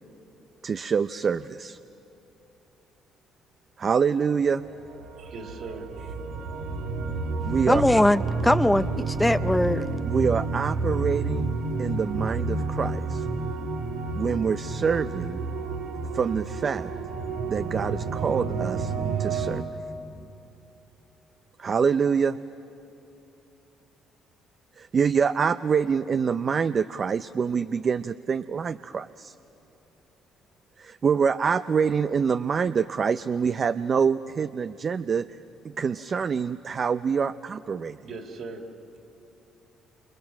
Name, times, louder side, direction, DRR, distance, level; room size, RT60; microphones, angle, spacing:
voice 1, 0.6-1.8 3.8-4.6 7.4-7.8 10.0-11.5 11.8-13.3 14.1-15.4 16.1-16.9 17.5-18.9 19.2-19.6 21.6-22.4 24.8-29.3 30.8-35.4 35.6-38.0, right 6 dB, 45° right, 0.5 m, -26 dB
sound 1, 4.6-19.6, right 3 dB, 85° right, 1.7 m, -30 dB
voice 2, 5.2-6.1 38.0-38.7, right 3 dB, 65° right, 3.4 m, -39 dB
voice 3, 7.7-9.9, left 1 dB, 10° left, 0.5 m, -21 dB
28.5 x 28.0 x 6.3 m
supercardioid pair, 80°, 0 cm